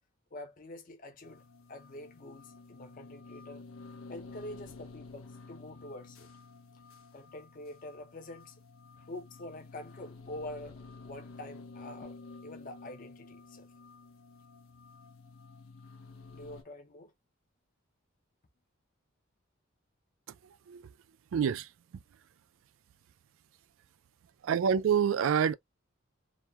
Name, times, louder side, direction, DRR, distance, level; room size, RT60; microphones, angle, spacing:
voice 1, 0.3-1.4 1.7-3.6 4.1-6.3 7.1-8.6 9.0-13.7 16.3-17.1, left 1 dB, 40° left, 0.5 m, -46 dB
sound 1, 1.2-16.6, left 3 dB, 85° left, 0.7 m, -51 dB
voice 2, 20.4-20.9 21.3-21.7 24.4-25.5, right 7 dB, 75° right, 0.3 m, -27 dB
2.9 x 2.2 x 2.2 m
head